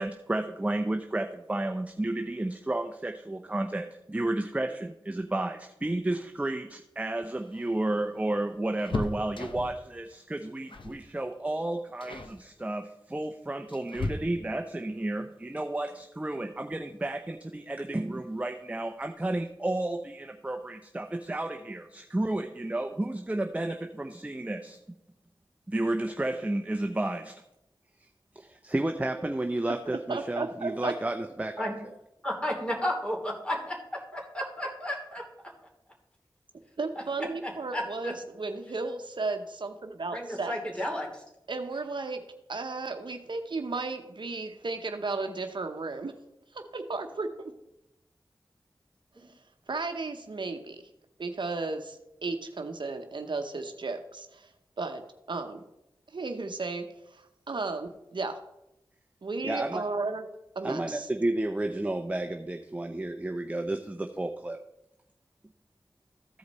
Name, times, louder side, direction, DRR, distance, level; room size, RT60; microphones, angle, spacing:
voice 1, 0.0-24.8 25.7-27.3 28.0-28.1 28.3-31.7 59.4-59.8 60.6-64.6, right 1 dB, 15° right, 5 dB, 0.6 m, -32 dB
sound 1, 7.2-9.9 10.7-11.0 11.3-11.6 12.0-12.4 13.2-14.7 16.4-16.5 16.9-17.0 18.2-18.6 18.9-19.0 19.3-19.5, left 3 dB, 75° left, 0.8 m, -37 dB
voice 2, 29.9-30.9 36.8-40.5 41.5-42.2 42.5-46.1 46.5-47.5 49.7-50.9 51.2-54.5 54.8-55.0 55.3-55.6 56.1-58.4 59.2-60.3 60.5-61.1, right 3 dB, 65° right, 6 dB, 0.8 m, -34 dB
voice 3, 32.2-33.8 34.3-35.2 37.4-38.1 40.1-41.1 49.2-49.3, equal, 10° left, -2 dB, 2.8 m, -32 dB
14.5 x 5.0 x 4.1 m, 0.88 s
cardioid pair, 45°, 9 cm